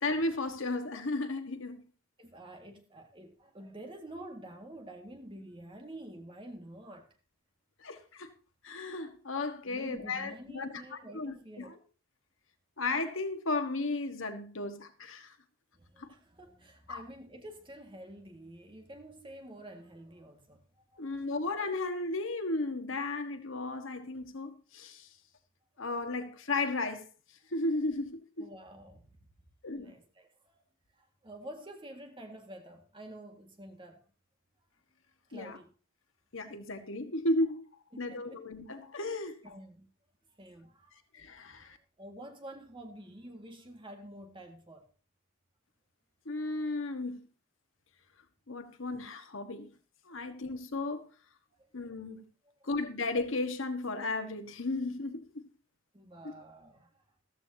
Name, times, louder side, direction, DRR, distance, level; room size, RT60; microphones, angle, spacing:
voice 1, 0.0-1.8 7.8-8.3 8.6-11.8 12.8-15.3 16.0-16.1 16.9-17.0 21.0-25.1 25.8-27.1 27.5-28.5 29.6-29.9 35.3-35.6 36.3-37.7 38.0-39.4 41.1-41.8 46.2-47.2 48.5-49.7 50.1-51.1 51.7-52.2 52.6-55.4 56.2-56.3, left 2 dB, 70° left, 1.4 m, -34 dB
voice 2, 2.2-7.1 9.7-11.7 15.7-20.7 20.9-21.2 28.4-29.0 29.8-30.6 31.0-34.0 35.3-35.7 37.9-38.4 39.4-39.9 40.3-41.0 42.0-44.9 51.5-51.7 55.9-57.0, right 1 dB, 25° right, 1.8 m, -49 dB
14.5 x 13.5 x 2.8 m
head